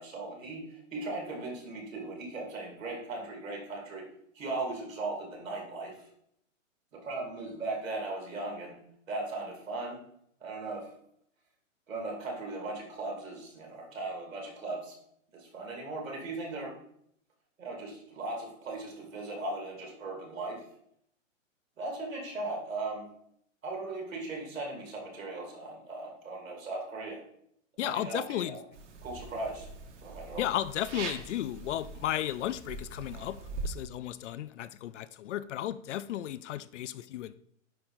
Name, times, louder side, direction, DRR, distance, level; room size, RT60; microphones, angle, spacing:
voice 1, 0.0-4.1 4.3-6.0 6.9-8.8 9.1-10.0 10.4-10.9 11.9-14.9 15.3-16.8 17.6-20.6 21.8-23.1 23.6-27.2 27.8-28.6 29.0-29.7 30.0-30.4, right 2 dB, 85° right, 2.7 m, -38 dB
voice 2, 27.8-28.6 30.4-33.4 33.6-37.3, left 12 dB, 65° left, 0.5 m, -34 dB
sound 1, 28.7-33.7, right 3 dB, 65° right, 1.4 m, -42 dB
10.0 x 4.3 x 2.6 m
hypercardioid pair, 145°, 39 cm